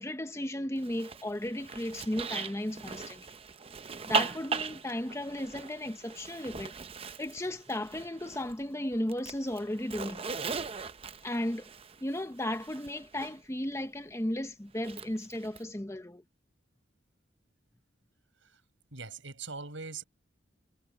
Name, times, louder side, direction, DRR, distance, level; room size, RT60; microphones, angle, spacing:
voice 1, 0.0-3.3 4.1-6.7 7.2-10.3 11.2-11.7 12.0-16.2, left 1 dB, 15° left, 0.9 m, -35 dB
Zipper (clothing), 0.8-8.6 8.9-13.3 14.8-15.6, right 5 dB, 30° right, 0.7 m, -38 dB
voice 2, 18.9-20.0, right 4 dB, 85° right, 5.6 m, -41 dB
head